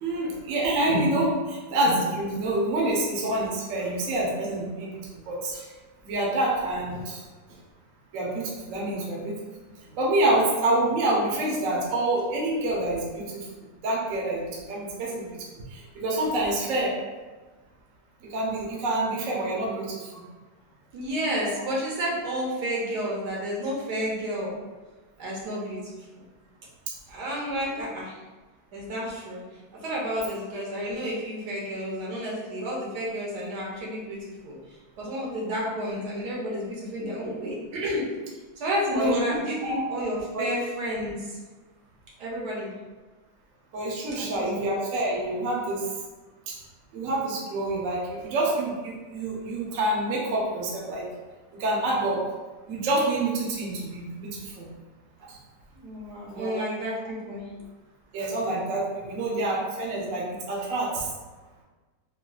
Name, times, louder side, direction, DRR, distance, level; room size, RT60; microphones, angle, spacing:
voice 1, 0.0-5.7 6.0-7.2 8.1-9.3 10.0-13.5 13.8-15.3 15.7-16.9 18.3-20.2 27.7-27.8 38.9-39.8 40.3-40.5 43.7-45.8 46.5-46.6 46.9-51.1 51.6-52.2 52.7-54.7 55.3-55.4 56.3-56.6 58.1-61.1, right 1 dB, 60° right, -3 dB, 0.9 m, -27 dB
voice 2, 20.9-24.5 25.2-26.2 27.1-28.2 28.7-29.4 29.8-34.6 35.0-38.0 38.6-41.4 42.2-42.7 44.2-44.5 55.7-57.5, equal, 80° right, -4 dB, 1.3 m, -31 dB
3.6 x 2.3 x 2.3 m, 1.3 s
omnidirectional pair, 1.8 m